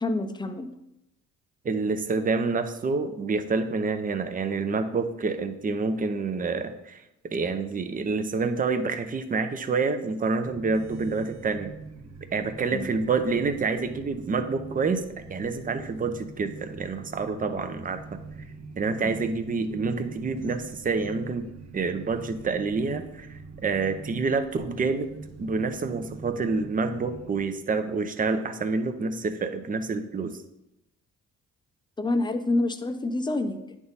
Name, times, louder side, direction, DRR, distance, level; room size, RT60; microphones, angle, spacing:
voice 1, 0.0-0.7 12.7-12.9 19.0-19.1 32.0-33.8, left 2 dB, 15° left, 8 dB, 0.6 m, -27 dB
voice 2, 1.6-7.0 7.3-11.7 12.3-15.0 15.3-18.2 18.8-21.5 21.7-25.1 25.4-30.4, right 4 dB, 30° right, 8 dB, 0.7 m, -28 dB
sound 1, 10.4-27.4, right 4 dB, 60° right, 1.1 m, -43 dB
9.3 x 3.6 x 4.0 m, 0.86 s
cardioid pair, 90°, 30 cm